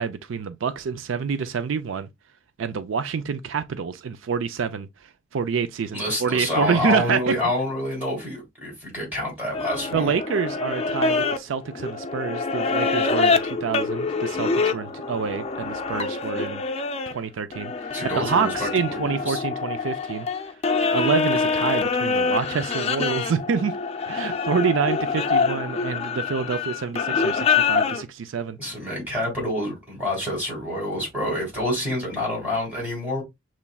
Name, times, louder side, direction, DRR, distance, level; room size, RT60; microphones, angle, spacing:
voice 1, 0.0-2.1 2.6-4.9 5.3-7.3 9.9-16.6 17.1-17.9 18.1-20.3 20.9-23.7 24.1-28.6, right 6 dB, 80° right, 0.4 m, -27 dB
voice 2, 5.9-10.1 17.9-19.4 28.6-33.2, left 1 dB, 10° right, 3.4 m, -27 dB
sound 1, 9.5-17.1 17.5-28.0, left 4 dB, 30° left, 0.5 m, -25 dB
6.9 x 3.1 x 2.3 m
head